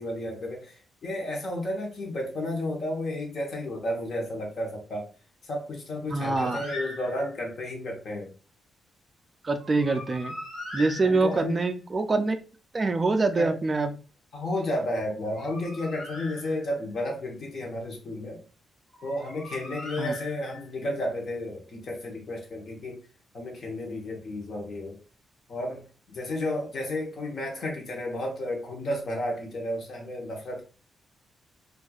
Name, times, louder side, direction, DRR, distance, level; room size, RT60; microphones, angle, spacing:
voice 1, 0.0-5.1 5.4-8.3 11.0-11.6 13.4-13.6 14.3-18.4 19.0-23.0 23.3-25.0 25.5-30.6, left 1 dB, 45° left, 1 dB, 0.9 m, -32 dB
voice 2, 6.1-6.6 9.4-10.4 10.7-12.4 12.7-14.0 20.0-20.1, right 3 dB, 20° right, 6 dB, 0.3 m, -25 dB
Bird, 6.4-7.5 9.6-11.7 15.1-17.0 18.9-20.8, left 2 dB, 60° left, 1.3 m, -41 dB
4.3 x 2.4 x 2.3 m, 0.36 s
wide cardioid pair, 170°, 0 cm